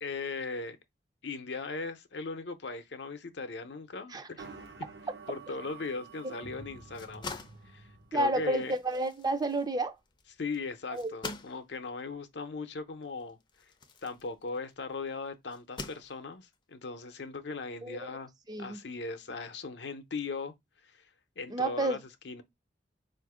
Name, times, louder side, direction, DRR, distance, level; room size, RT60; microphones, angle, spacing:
voice 1, 0.0-0.8 1.2-4.4 5.3-7.3 7.7-7.8 8.1-8.7 10.4-13.4 14.0-18.3 18.6-20.5 20.9-21.0 21.4-22.0 22.2-22.4, left 4 dB, 75° left, 0.6 m, -38 dB
sound 1, 4.4-8.5, right 4 dB, 65° right, 0.9 m, -49 dB
sound 2, 6.8-14.9 15.5-16.6, left 4 dB, 25° left, 0.5 m, -46 dB
voice 2, 8.1-10.0 10.9-11.3 17.8-18.1 18.5-18.8 21.5-22.0, right 2 dB, 20° right, 0.5 m, -31 dB
4.3 x 2.5 x 4.7 m
head